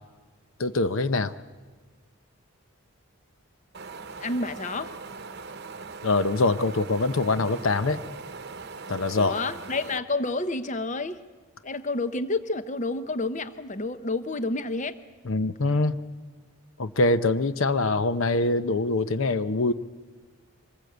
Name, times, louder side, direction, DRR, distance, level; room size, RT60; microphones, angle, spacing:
voice 1, 0.6-1.3 6.0-8.0 8.9-9.4 15.3-15.9 16.8-19.7, left 2 dB, 65° left, 12 dB, 0.8 m, -24 dB
Wind, 3.7-10.0, right 4 dB, 50° right, 0.9 m, -40 dB
voice 2, 4.2-4.9 9.1-11.2 11.6-14.9, left 2 dB, 35° left, 12 dB, 0.8 m, -29 dB
25.5 x 20.5 x 8.0 m, 1.4 s
head